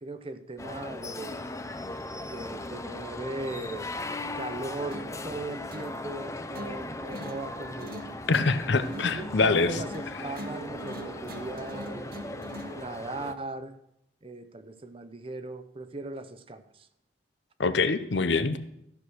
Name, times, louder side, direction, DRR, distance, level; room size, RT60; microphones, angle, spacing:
voice 1, 0.0-1.4 2.2-3.9 4.4-8.0 8.8-12.2 12.7-13.7 14.2-16.9, right 2 dB, 30° right, 11 dB, 0.7 m, -38 dB
sound 1, 0.6-13.3, left 2 dB, 15° left, 0.5 m, -38 dB
sound 2, 4.9-12.9, right 1 dB, 50° right, 1.0 m, -43 dB
voice 2, 8.3-9.8 17.6-18.6, left 4 dB, 75° left, 11 dB, 0.7 m, -24 dB
14.0 x 6.2 x 6.3 m, 0.78 s
head